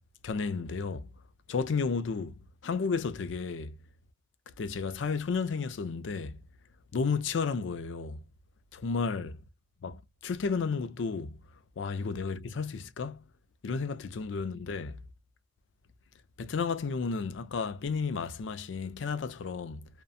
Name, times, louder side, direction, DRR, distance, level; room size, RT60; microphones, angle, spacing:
voice 1, 0.2-1.1 1.5-3.8 4.6-6.4 6.9-8.2 8.7-9.4 9.8-11.4 11.8-13.2 13.6-15.0 16.4-19.9, left 5 dB, 75° left, 0.4 m, -32 dB
2.6 x 2.2 x 2.4 m
head